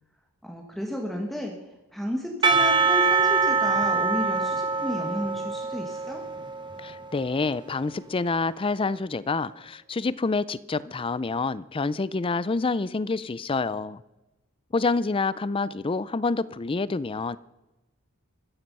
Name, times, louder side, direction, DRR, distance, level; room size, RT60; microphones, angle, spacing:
voice 1, 0.4-1.5 1.9-6.2, left 1 dB, ahead, 1.6 m, -32 dB
Percussion / Church bell, 2.4-7.5, right 4 dB, 20° right, 1.4 m, -24 dB
voice 2, 6.8-14.0 14.7-17.4, left 3 dB, 25° left, 0.4 m, -27 dB
14.5 x 13.5 x 5.5 m
head